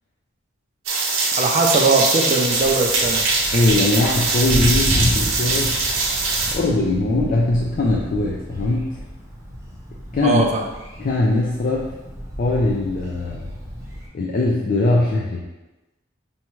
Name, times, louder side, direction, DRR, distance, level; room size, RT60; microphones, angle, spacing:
sound 1, 0.9-6.5, right 3 dB, 75° right, 0.8 m, -22 dB
voice 1, 1.4-3.2 10.2-10.6, right 3 dB, 35° right, 1 dB, 0.4 m, -19 dB
Thunder, 2.4-14.1, equal, 15° right, 0.7 m, -31 dB
voice 2, 3.5-5.8 6.5-9.0 10.1-10.4 11.0-12.0 12.4-13.5 14.1-15.4, left 2 dB, 45° left, -3 dB, 0.4 m, -20 dB
5.3 x 2.3 x 3.0 m, 1.1 s
head